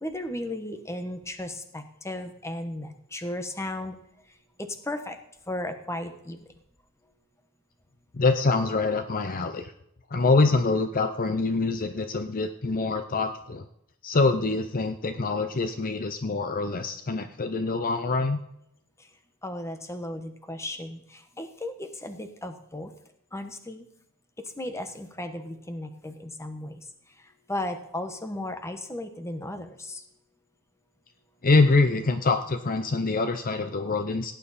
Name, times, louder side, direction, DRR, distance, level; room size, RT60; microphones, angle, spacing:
voice 1, 0.0-4.0 4.6-5.2 5.5-6.4 19.4-22.9 23.3-23.8 24.6-26.8 27.5-30.0, left 1 dB, 15° left, 7 dB, 1.2 m, -35 dB
voice 2, 8.1-9.7 10.1-13.7 14.0-18.4 31.4-34.3, left 3 dB, 40° left, 9 dB, 0.7 m, -25 dB
17.0 x 9.2 x 4.2 m, 0.75 s
head